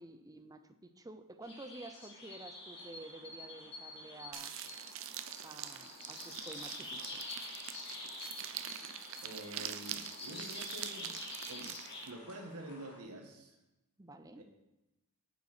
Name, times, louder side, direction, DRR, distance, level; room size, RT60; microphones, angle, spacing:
voice 1, 0.0-4.5 5.4-7.2 14.0-14.4, right 2 dB, 15° right, 9 dB, 0.6 m, -51 dB
sound 1, 1.4-13.0, left 2 dB, 50° left, 3.0 m, -47 dB
sound 2, 4.3-12.1, right 10 dB, 65° right, 0.7 m, -45 dB
voice 2, 9.2-11.1 11.5-11.8 12.0-13.6 14.4-14.5, right 1 dB, 90° right, 4 dB, 1.6 m, -47 dB
8.3 x 8.3 x 5.0 m, 0.96 s
head